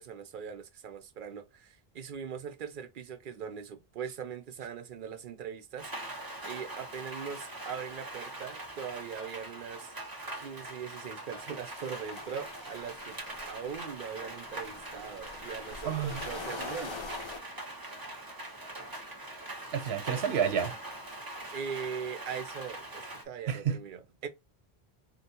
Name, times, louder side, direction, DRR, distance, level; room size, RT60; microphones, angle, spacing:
voice 1, 0.0-5.9 6.4-9.9 10.3-13.2 13.5-17.1 21.5-24.3, right 7 dB, 60° right, 0.7 m, -41 dB
Rain, 5.8-23.2, right 1 dB, 25° right, 0.7 m, -42 dB
sound 1, 11.5-17.4, left 3 dB, 40° left, 0.4 m, -44 dB
voice 2, 15.9-16.2 19.7-20.7 23.5-23.8, right 8 dB, 85° right, 1.0 m, -29 dB
3.8 x 2.2 x 2.7 m
omnidirectional pair, 1.0 m